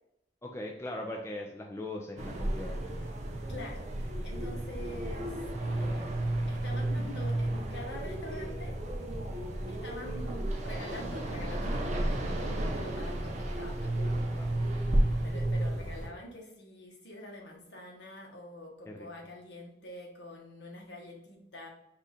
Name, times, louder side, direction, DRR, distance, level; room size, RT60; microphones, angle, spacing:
voice 1, 0.4-2.9 13.5-13.6 14.3-14.6 18.9-19.1, left 1 dB, 15° left, 0 dB, 0.4 m, -40 dB
sound 1, 2.2-16.1, right 1 dB, 35° right, 0.7 m, -32 dB
voice 2, 3.5-5.3 5.6-8.7 9.7-14.1 14.4-14.7 15.2-21.7, left 1 dB, 65° left, -1 dB, 1.1 m, -46 dB
4.9 x 2.4 x 4.1 m, 0.82 s
head